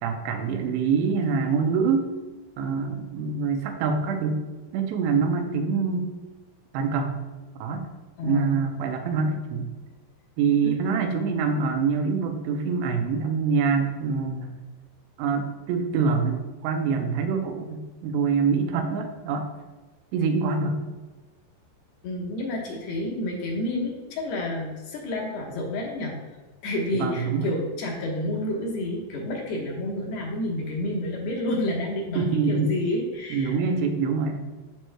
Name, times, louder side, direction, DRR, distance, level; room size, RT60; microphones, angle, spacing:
voice 1, 0.0-2.1 2.6-4.4 4.7-6.1 6.7-7.1 7.6-7.9 8.2-9.7 10.4-14.6 15.2-19.5 20.1-20.8 26.9-27.5 32.2-32.7 33.3-34.4, right 5 dB, 90° right, 5 dB, 3.0 m, -25 dB
voice 2, 8.2-8.7 10.6-10.8 22.0-26.2 26.6-33.6, left 1 dB, 75° left, -3 dB, 3.1 m, -29 dB
13.0 x 4.7 x 2.2 m, 1.2 s
omnidirectional pair, 4.8 m